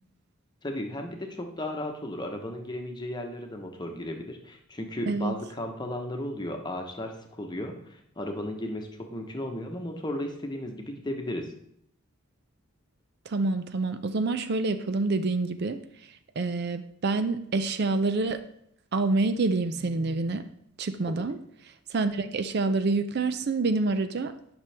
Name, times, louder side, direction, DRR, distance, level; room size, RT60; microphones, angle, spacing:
voice 1, 0.6-11.5 21.1-21.2, left 1 dB, 20° left, 3 dB, 1.0 m, -35 dB
voice 2, 13.3-18.4 18.9-20.4 20.8-21.4 21.6-24.3, right 3 dB, 50° right, 10 dB, 0.4 m, -27 dB
10.5 x 6.0 x 3.4 m, 0.73 s
head